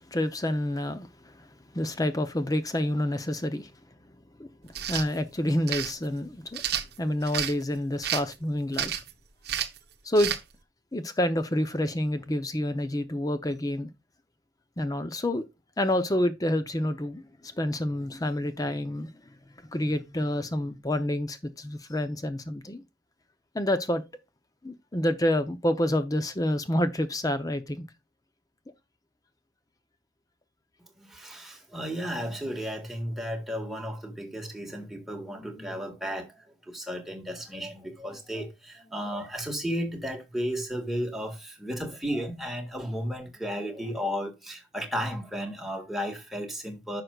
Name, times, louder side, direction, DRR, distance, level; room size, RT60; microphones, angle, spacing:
voice 1, 0.1-1.5 1.7-3.7 4.4-4.5 4.9-6.6 7.0-9.0 10.0-10.3 10.9-13.9 14.8-15.5 15.8-19.1 19.7-22.8 23.5-24.0 24.6-27.9, left 1 dB, 20° left, 0.7 m, -28 dB
Pepper mill grinds pepper, 4.7-5.1 5.7-5.9 6.5-7.5 8.0-8.3 8.7-9.1 9.5-9.8 10.2-10.4, right 9 dB, 55° right, 0.9 m, -30 dB
voice 2, 31.0-47.0, equal, ahead, 1.8 m, -34 dB
10.5 x 6.6 x 2.4 m
head